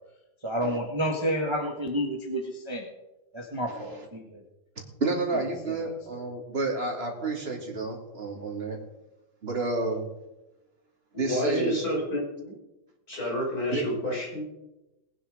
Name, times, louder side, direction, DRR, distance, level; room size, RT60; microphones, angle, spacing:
voice 1, 0.4-2.9 3.3-4.4 5.7-5.8 6.1-6.2, equal, 15° right, 2 dB, 1.5 m, -30 dB
voice 2, 3.7-4.1 5.0-8.8 9.4-10.0 11.1-11.8 13.7-13.8, right 3 dB, 30° right, 1 dB, 2.9 m, -30 dB
voice 3, 11.1-12.5 13.1-14.4, equal, 50° left, -3 dB, 6.2 m, -29 dB
19.5 x 9.6 x 5.1 m, 0.97 s
omnidirectional pair, 2.1 m